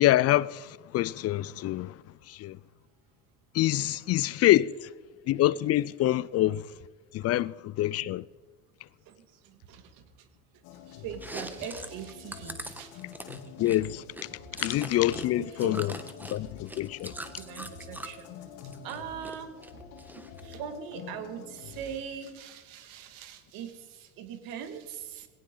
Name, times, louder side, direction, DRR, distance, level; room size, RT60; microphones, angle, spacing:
voice 1, 0.0-2.6 3.5-4.9 5.3-6.8 7.1-8.2 13.6-14.0 14.3-16.0 16.3-17.1, left 14 dB, 45° left, 0.4 m, -26 dB
voice 2, 9.4-10.0 10.9-13.0 14.5-14.6 15.4-15.8 17.4-18.3 18.8-19.5 20.4-25.3, right 8 dB, 70° right, 2.2 m, -41 dB
sound 1, 10.6-21.9, left 6 dB, 75° left, 3.0 m, -47 dB
Chewing mastication, 11.1-15.3 15.5-18.2 18.6-19.4 19.6-20.5, right 1 dB, 5° right, 1.3 m, -42 dB
19.5 x 17.0 x 3.9 m
supercardioid pair, 90°, 36 cm